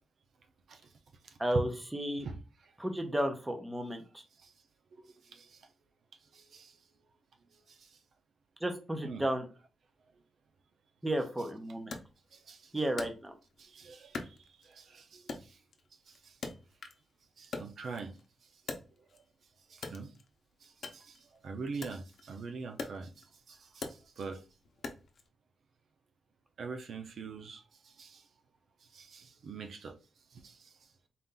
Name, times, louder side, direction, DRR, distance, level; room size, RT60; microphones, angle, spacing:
voice 1, 1.4-2.3 2.8-4.2 8.6-9.5 11.0-11.9 12.7-13.3, right 1 dB, 10° right, 0.7 m, -33 dB
voice 2, 4.9-5.7 6.3-6.8 7.7-8.0 9.0-9.2 12.3-12.7 13.6-15.6 16.1-16.4 17.4-18.2 18.4-18.5 19.7-20.1 20.6-24.4 26.6-28.3 28.9-29.9 30.3-30.8, right 4 dB, 65° right, 0.6 m, -45 dB
Wood, 11.9-13.7 14.1-14.9 15.3-17.1 17.4-19.3 19.7-25.3, left 4 dB, 60° left, 0.7 m, -44 dB
4.1 x 2.5 x 3.7 m
wide cardioid pair, 135°, 0 cm